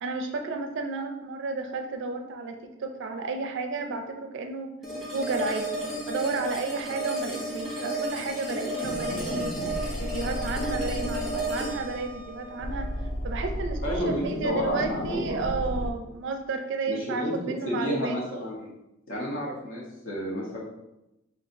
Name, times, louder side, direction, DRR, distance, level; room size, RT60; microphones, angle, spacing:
voice 1, 0.0-4.7 5.1-5.7 6.1-9.5 10.0-12.9 13.2-18.2, right 3 dB, 65° right, 5 dB, 0.4 m, -32 dB
sound 1, 4.8-13.9, right 1 dB, ahead, 1.0 m, -33 dB
sound 2, 8.8-15.9, left 1 dB, 40° left, 0.3 m, -34 dB
voice 2, 13.8-15.6 16.9-18.7 19.1-20.6, equal, 75° left, -5 dB, 1.1 m, -31 dB
5.5 x 2.4 x 2.6 m, 0.91 s
head